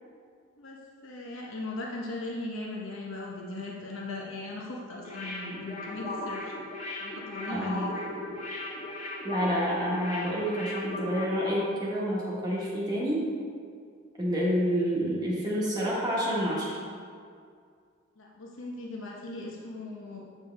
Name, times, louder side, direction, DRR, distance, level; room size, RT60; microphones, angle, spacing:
voice 1, 0.6-6.6 7.0-7.9 18.2-20.2, left 2 dB, 70° left, -2 dB, 0.9 m, -38 dB
sound 1, 5.0-11.7 12.0-12.1, left 2 dB, 40° left, 1.8 m, -37 dB
voice 2, 7.5-7.9 9.2-13.3 14.2-16.8, equal, 20° right, -6 dB, 1.1 m, -28 dB
8.1 x 6.0 x 3.4 m, 2.2 s
head